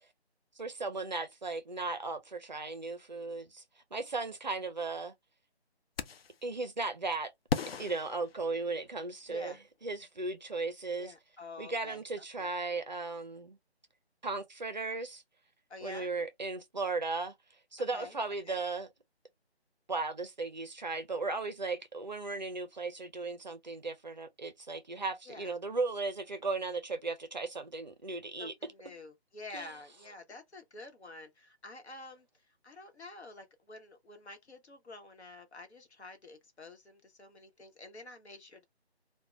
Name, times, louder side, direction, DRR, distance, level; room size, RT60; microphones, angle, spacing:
voice 1, 0.6-3.6 3.9-5.1 6.4-7.3 7.8-9.6 9.8-11.1 11.6-13.6 14.2-15.2 15.8-17.3 17.7-18.9 19.9-28.5 29.5-29.7, right 3 dB, 45° right, 0.4 m, -36 dB
sound 1, 6.0-6.4 7.5-9.0, left 5 dB, 65° left, 0.5 m, -37 dB
voice 2, 9.3-9.6 11.0-12.0 12.4-12.5 15.7-16.1 17.9-18.1 18.4-18.6 25.2-25.5 28.4-38.6, left 2 dB, 85° left, 1.0 m, -49 dB
2.9 x 2.1 x 2.4 m
figure-of-eight pair, 160°, 33 cm